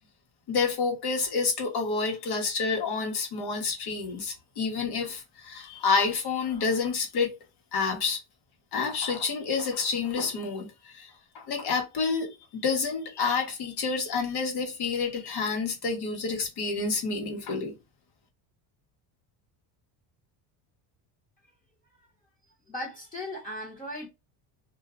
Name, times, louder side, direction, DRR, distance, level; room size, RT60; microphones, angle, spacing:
voice 1, 0.5-7.4 7.7-8.2 8.7-12.3 12.6-17.7, left 4 dB, 55° left, 1.3 m, -29 dB
voice 2, 22.7-24.1, left 1 dB, 15° left, 1.0 m, -37 dB
2.7 x 2.2 x 3.5 m
cardioid pair, 145°, 47 cm